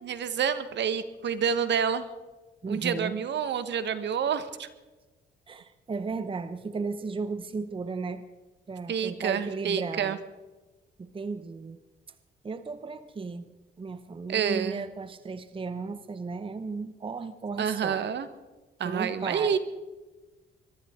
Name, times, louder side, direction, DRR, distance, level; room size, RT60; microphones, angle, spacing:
voice 1, 0.0-2.1 2.7-4.7 8.9-10.2 14.3-14.8 17.6-18.3 18.8-19.6, right 7 dB, 60° right, 12 dB, 1.2 m, -28 dB
voice 2, 2.6-3.2 5.5-8.2 8.7-10.2 11.0-11.8 12.4-13.5 13.8-18.1 18.8-19.6, right 4 dB, 25° right, 12 dB, 0.8 m, -35 dB
23.0 x 13.0 x 3.7 m, 1.2 s
cardioid pair, 90°, 20 cm